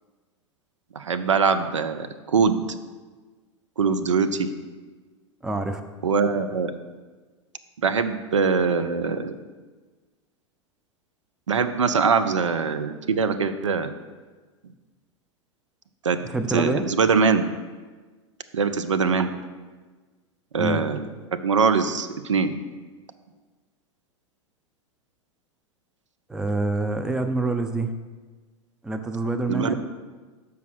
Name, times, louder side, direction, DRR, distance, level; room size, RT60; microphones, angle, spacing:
voice 1, 1.0-2.5 3.8-4.5 6.0-6.7 7.8-9.4 11.5-13.9 16.0-16.2 16.5-17.4 18.5-19.3 20.5-21.0 21.4-22.5 29.5-29.7, right 5 dB, 75° right, 10 dB, 0.5 m, -22 dB
voice 2, 5.4-5.8 16.3-16.8 20.6-20.8 26.3-27.9 28.8-29.7, right 2 dB, 5° right, 7 dB, 0.5 m, -26 dB
6.9 x 4.7 x 6.2 m, 1.4 s
figure-of-eight pair, 90°, 16 cm